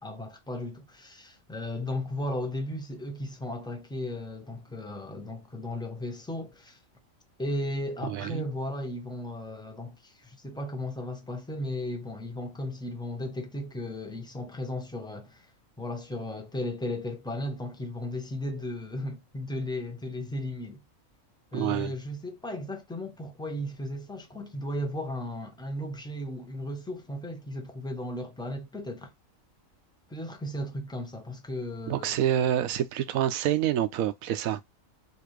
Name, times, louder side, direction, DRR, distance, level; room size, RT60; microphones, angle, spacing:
voice 1, 0.0-6.8 7.4-15.5 15.8-20.8 21.5-29.1 30.1-32.2, left 1 dB, 5° left, 0.3 m, -35 dB
voice 2, 8.1-8.5 21.5-21.9 31.9-34.6, right 11 dB, 80° right, 1.0 m, -27 dB
4.1 x 2.6 x 3.0 m
omnidirectional pair, 1.4 m